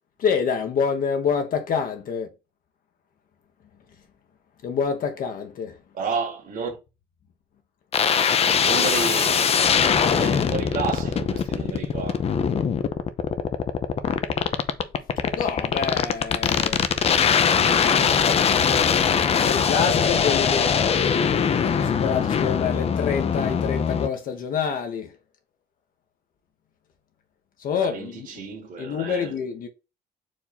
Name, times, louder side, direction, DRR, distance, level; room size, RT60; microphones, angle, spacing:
voice 1, 0.2-2.3 4.6-5.8 15.4-16.8 19.4-20.8 21.4-25.1 27.6-28.3 28.8-29.7, left 6 dB, 55° left, 1.0 m, -27 dB
voice 2, 5.9-6.8 8.4-9.5 10.1-12.2 27.8-29.4, right 5 dB, 50° right, 1.9 m, -31 dB
sound 1, 7.9-24.1, left 7 dB, 35° left, 0.6 m, -21 dB
4.7 x 2.7 x 4.1 m
cardioid pair, 110°, 17 cm